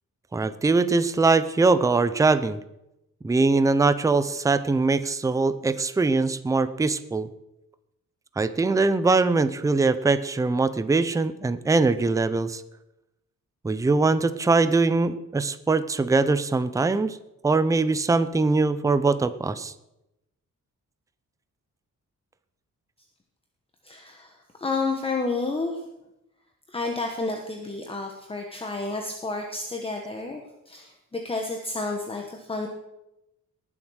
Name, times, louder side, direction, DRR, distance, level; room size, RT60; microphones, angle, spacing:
voice 1, 0.3-2.6 3.2-7.3 8.4-12.6 13.6-17.2 17.4-19.7, right 3 dB, 10° right, 13 dB, 0.5 m, -22 dB
voice 2, 23.8-25.8 26.7-30.4 30.7-32.7, left 3 dB, 15° left, 2 dB, 1.2 m, -30 dB
19.5 x 7.3 x 6.3 m, 0.90 s
wide cardioid pair, 180°, 33 cm